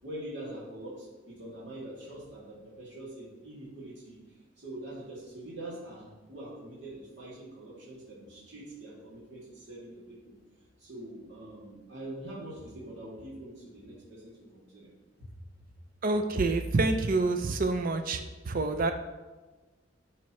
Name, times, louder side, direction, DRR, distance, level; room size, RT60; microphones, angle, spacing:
voice 1, 0.0-4.2 4.6-10.3 10.8-14.9 15.2-15.3, right 1 dB, 65° right, -8 dB, 2.5 m, -44 dB
voice 2, 16.0-18.9, right 3 dB, 45° right, 7 dB, 0.5 m, -27 dB
11.5 x 6.0 x 3.1 m, 1.3 s
head